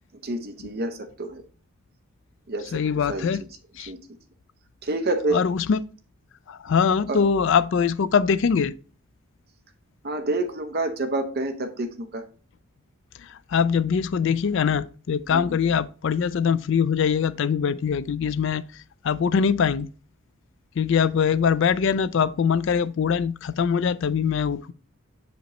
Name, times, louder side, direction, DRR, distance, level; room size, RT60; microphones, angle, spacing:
voice 1, 0.2-1.4 2.5-2.7 3.1-3.3 3.9-4.0 4.8-5.4 7.1-7.2 10.0-12.2 15.3-15.4, right 2 dB, 45° right, 0.7 m, -28 dB
voice 2, 2.7-3.4 3.8-3.9 5.3-5.8 6.5-8.7 13.5-18.6 19.0-19.9 20.8-24.7, left 6 dB, 60° left, 0.3 m, -22 dB
8.0 x 5.1 x 3.0 m
head